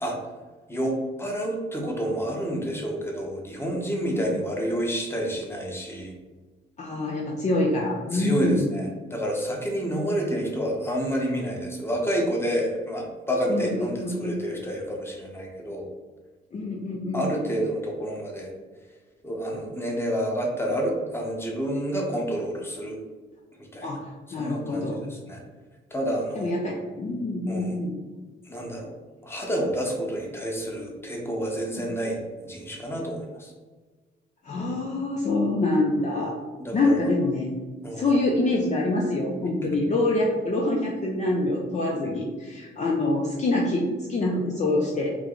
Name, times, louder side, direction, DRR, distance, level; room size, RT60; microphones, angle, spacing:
voice 1, 0.7-6.1 8.1-15.9 17.1-18.5 19.2-23.0 23.7-24.0 24.3-25.4 25.9-26.5 27.5-27.8 28.5-28.9 29.2-33.5 36.6-37.0 37.8-38.0 39.6-39.8 41.9-42.1, equal, 10° left, -1 dB, 1.1 m, -29 dB
voice 2, 6.8-8.7 13.5-14.4 16.5-17.2 23.8-25.0 26.3-27.9 34.4-36.4 36.7-37.5 38.0-45.2, left 2 dB, 35° left, -1 dB, 0.6 m, -25 dB
4.7 x 2.2 x 3.8 m, 1.3 s
cardioid pair, 90°, 20 cm